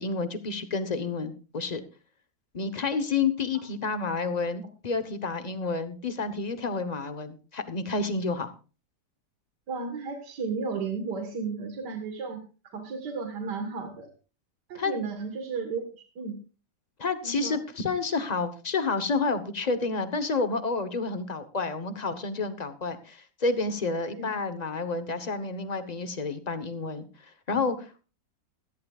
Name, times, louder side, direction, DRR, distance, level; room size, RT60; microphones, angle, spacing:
voice 1, 0.0-1.8 2.5-8.5 14.7-14.9 17.0-28.0, left 4 dB, 30° left, 11 dB, 0.9 m, -30 dB
voice 2, 9.7-12.4 12.7-14.1 14.7-16.4 17.2-17.6 24.1-24.3, right 4 dB, 75° right, 4 dB, 2.1 m, -34 dB
16.5 x 14.5 x 2.4 m, 0.34 s
omnidirectional pair, 1.8 m